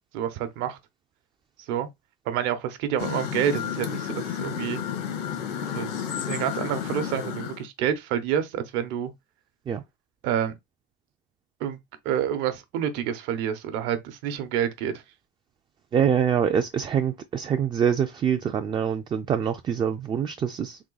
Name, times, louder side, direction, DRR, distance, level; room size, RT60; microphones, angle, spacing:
voice 1, 0.1-0.8 1.7-1.9 2.3-4.8 5.7-5.9 6.2-9.1 10.2-10.5 11.6-11.8 12.0-14.9, right 9 dB, 70° right, 0.9 m, -28 dB
sound 1, 3.0-7.7, left 8 dB, 90° left, 1.4 m, -31 dB
voice 2, 15.9-20.8, right 8 dB, 25° right, 0.4 m, -25 dB
3.7 x 2.8 x 4.0 m
cardioid pair, 135°, 20 cm